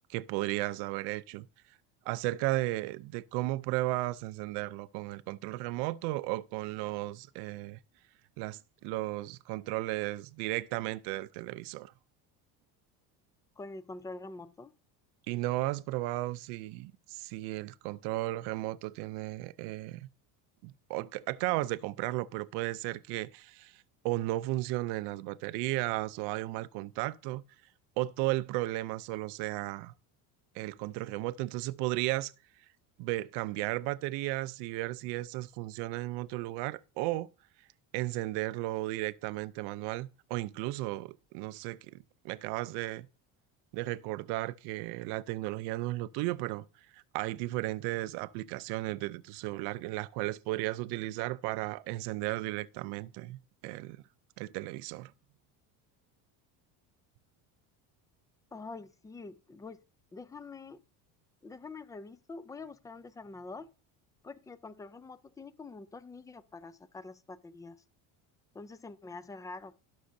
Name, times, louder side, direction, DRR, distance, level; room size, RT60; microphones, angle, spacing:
voice 1, 0.1-1.5 2.1-7.8 8.4-11.9 15.3-20.1 20.6-23.7 24.0-27.4 28.0-29.9 30.5-32.3 33.0-37.3 37.9-42.0 42.2-43.1 43.7-46.6 46.9-53.4 53.6-54.0 54.4-55.1, right 18 dB, 80° right, 0.6 m, -34 dB
voice 2, 13.6-14.7 58.5-59.8 60.1-60.8 61.4-63.7 64.2-67.8 68.5-69.8, left 3 dB, 10° left, 0.3 m, -45 dB
18.0 x 6.3 x 2.7 m
cardioid pair, 135°, 40 cm